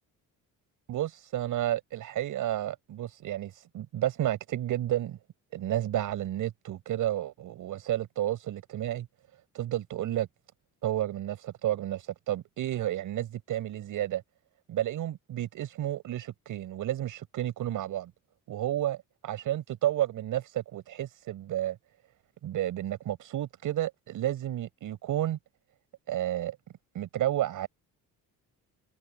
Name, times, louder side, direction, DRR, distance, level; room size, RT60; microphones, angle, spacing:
voice 1, 0.9-5.2 5.5-9.1 9.5-10.3 10.8-14.2 14.7-18.1 18.5-19.0 19.3-21.8 22.4-25.4 26.1-26.6 26.9-27.7, right 12 dB, 65° right, 6.1 m, -31 dB
cardioid pair, 150°, 34 cm